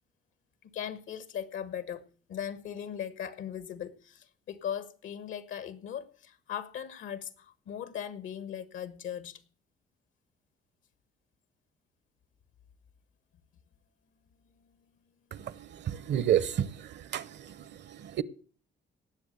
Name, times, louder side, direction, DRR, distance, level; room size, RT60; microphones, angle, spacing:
voice 1, 0.6-9.4, left 9 dB, 80° left, 1.5 m, -39 dB
voice 2, 15.8-17.5 17.9-18.2, right 10 dB, 60° right, 0.8 m, -30 dB
17.5 x 6.9 x 6.8 m
cardioid pair, 90°, 20 cm